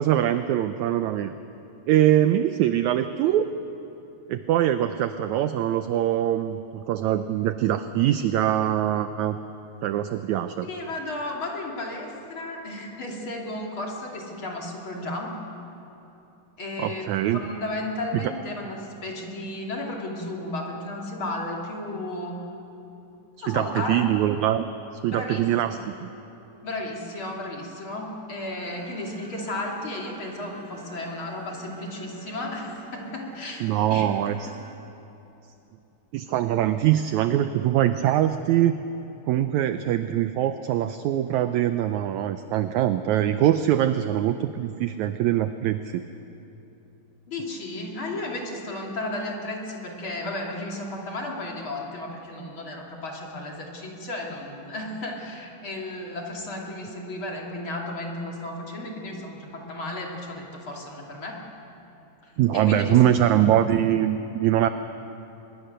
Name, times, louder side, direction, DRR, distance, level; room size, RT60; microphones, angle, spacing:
voice 1, 0.0-1.3 1.9-3.5 4.3-9.4 9.8-10.7 16.8-17.4 18.2-18.3 23.5-24.6 25.0-25.9 33.6-34.5 36.1-38.8 39.3-46.0 62.4-64.7, right 12 dB, 85° right, 10 dB, 1.6 m, -23 dB
voice 2, 10.6-15.4 16.6-22.4 23.4-24.0 25.1-25.8 26.6-34.1 47.3-61.4 62.2-63.3, left 1 dB, 40° left, -1 dB, 3.1 m, -34 dB
sound 1, 28.6-34.8, right 4 dB, 45° right, 2.2 m, -48 dB
24.0 x 21.5 x 6.7 m, 2.9 s
omnidirectional pair, 4.0 m